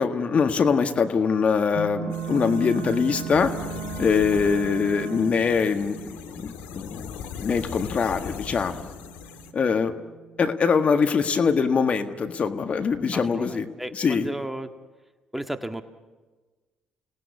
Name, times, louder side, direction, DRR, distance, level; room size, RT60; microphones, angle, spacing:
voice 1, 0.0-3.5 4.0-8.9 9.5-9.9 10.4-14.3, left 5 dB, 45° left, 7 dB, 1.7 m, -23 dB
sound 1, 1.7-11.2, right 7 dB, 60° right, 1.9 m, -40 dB
Wind instrument woodwind instrument, 1.9-5.6, right 9 dB, 90° right, 1.0 m, -38 dB
sound 2, 2.1-9.5, left 8 dB, 75° left, 1.7 m, -39 dB
voice 2, 13.1-14.7 15.3-15.8, right 1 dB, 5° right, 7 dB, 1.7 m, -34 dB
29.5 x 18.5 x 8.5 m, 1.3 s
hypercardioid pair, 50°, 3 cm